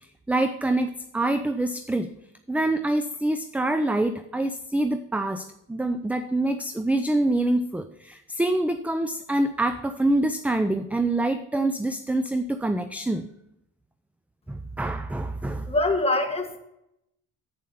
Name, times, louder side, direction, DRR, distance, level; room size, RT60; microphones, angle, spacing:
voice 1, 0.3-2.1 2.5-13.3 14.5-15.7, right 2 dB, 5° right, 9 dB, 0.4 m, -26 dB
voice 2, 15.7-16.6, left 2 dB, 20° left, 4 dB, 1.6 m, -24 dB
8.6 x 7.4 x 4.2 m, 0.82 s
cardioid pair, 90°, 30 cm